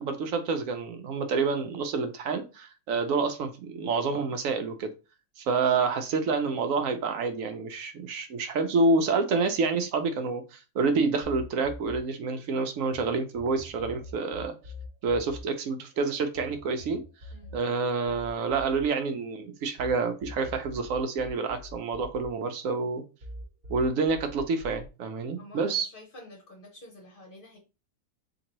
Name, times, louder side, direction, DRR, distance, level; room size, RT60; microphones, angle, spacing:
voice 1, 0.0-4.9 5.4-14.5 15.0-17.0 17.5-23.0 23.7-25.9, right 4 dB, 75° right, 7 dB, 0.9 m, -28 dB
sound 1, 11.2-13.0 13.3-19.9 20.2-22.9 23.2-24.9, left 1 dB, 50° right, 1.1 m, -44 dB
voice 2, 25.4-27.6, left 1 dB, 45° left, 1 dB, 0.8 m, -49 dB
3.8 x 2.5 x 2.9 m, 0.30 s
omnidirectional pair, 1.5 m